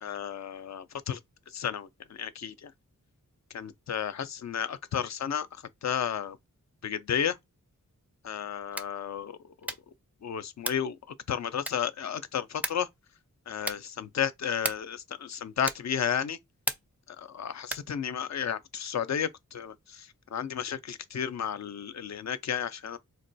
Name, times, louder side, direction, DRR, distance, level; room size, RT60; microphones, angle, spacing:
voice 1, 0.0-1.2 1.5-1.9 2.2-2.5 3.5-5.5 5.8-6.4 6.8-7.3 8.2-9.3 9.6-9.7 10.2-11.0 11.3-12.9 13.5-16.4 17.3-19.3 19.5-19.7 20.3-23.0, left 8 dB, 55° left, 0.4 m, -32 dB
sound 1, 8.6-9.0 9.6-10.0 10.6-11.0 11.6-12.0 12.6-13.0 13.6-14.0 14.6-15.0 15.6-16.0 16.6-17.0 17.6-18.0, right 1 dB, 5° right, 0.4 m, -36 dB
3.9 x 2.2 x 2.6 m
wide cardioid pair, 85°, 33 cm